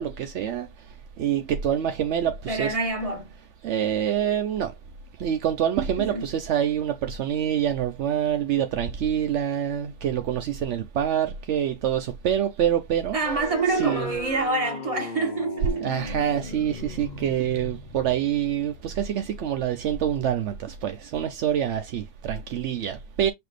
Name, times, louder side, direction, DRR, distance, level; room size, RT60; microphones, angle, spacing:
voice 1, 0.0-2.8 3.6-4.8 5.2-13.2 13.7-14.1 15.8-23.3, right 9 dB, 70° right, 0.6 m, -26 dB
voice 2, 2.5-3.3 6.0-6.3 13.1-15.9, right 3 dB, 20° right, 1.5 m, -26 dB
sound 1, 13.2-20.3, left 5 dB, 80° left, 0.4 m, -38 dB
6.0 x 2.8 x 3.2 m
omnidirectional pair, 1.8 m